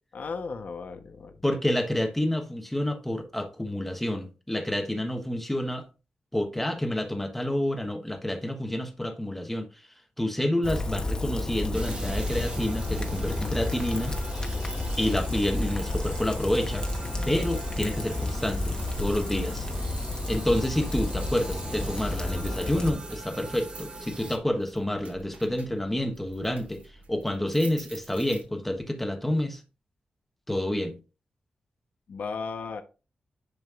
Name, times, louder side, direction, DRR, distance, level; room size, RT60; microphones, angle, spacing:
voice 1, 0.1-1.4 32.1-32.8, left 4 dB, 60° left, 1.0 m, -35 dB
voice 2, 1.4-5.8 6.3-9.7 10.2-14.2 15.0-16.9 17.3-19.7 20.3-26.8 27.1-29.6 30.5-31.0, left 1 dB, 5° left, 1.1 m, -28 dB
Rain, 10.6-22.9, left 2 dB, 25° left, 1.2 m, -31 dB
sound 1, 11.7-24.4, right 2 dB, 35° right, 1.2 m, -41 dB
sound 2, 14.1-28.9, right 2 dB, 60° right, 2.5 m, -50 dB
11.0 x 5.0 x 2.5 m
wide cardioid pair, 155°, 3 cm